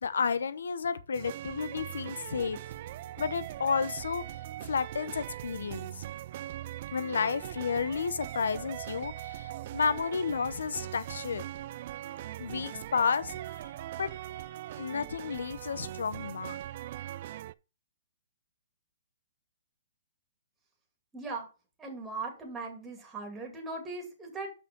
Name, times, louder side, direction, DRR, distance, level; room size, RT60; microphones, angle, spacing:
voice 1, 0.0-2.6 3.2-4.2 4.7-6.0 6.9-11.5 12.4-13.3 14.0-14.2 14.8-16.6, left 5 dB, 80° left, 0.8 m, -31 dB
sound 1, 1.1-17.5, right 13 dB, 45° right, 0.3 m, -41 dB
voice 2, 21.1-21.5 21.8-24.5, right 3 dB, 10° right, 2.3 m, -39 dB
6.1 x 5.5 x 5.2 m
hypercardioid pair, 145°, 0 cm